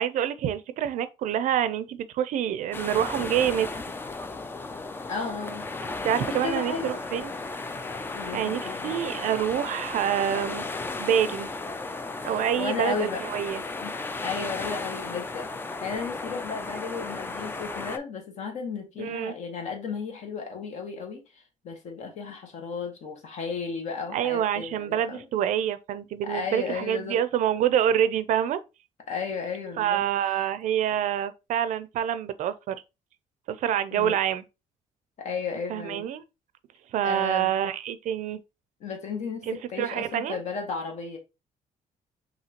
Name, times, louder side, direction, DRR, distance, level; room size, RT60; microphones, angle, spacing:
voice 1, 0.0-3.8 6.0-7.3 8.3-10.7 11.0-11.5 12.2-13.6 19.0-19.3 24.1-28.6 29.8-32.8 33.5-34.4 35.7-36.2 36.9-38.4 39.4-40.4, right 10 dB, 70° right, 0.5 m, -27 dB
sound 1, 2.7-18.0, left 3 dB, 15° left, 0.4 m, -35 dB
voice 2, 5.1-5.7 6.3-7.0 8.1-8.9 12.3-13.2 13.8-13.9 14.2-15.5 15.8-25.3 26.2-27.2 29.1-30.3 33.9-34.2 35.2-36.1 37.0-37.5 38.8-41.2, left 5 dB, 60° left, 1.5 m, -34 dB
5.7 x 2.8 x 2.9 m
cardioid pair, 140°, 14 cm